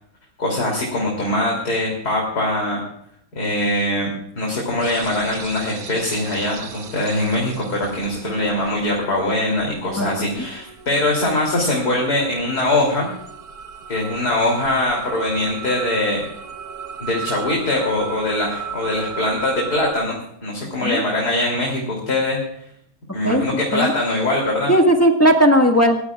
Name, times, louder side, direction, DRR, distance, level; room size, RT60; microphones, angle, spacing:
voice 1, 0.4-2.8 3.3-13.1 13.9-16.3 17.0-22.4 23.1-24.7, left 1 dB, 50° left, -2 dB, 3.7 m, -22 dB
sound 1, 4.8-19.9, right 7 dB, 50° right, 1.6 m, -36 dB
voice 2, 10.0-10.3 20.8-21.0 23.2-23.4 23.7-23.9 24.7-26.0, equal, 10° left, 2 dB, 1.5 m, -16 dB
27.5 x 15.5 x 2.4 m, 0.71 s
omnidirectional pair, 2.2 m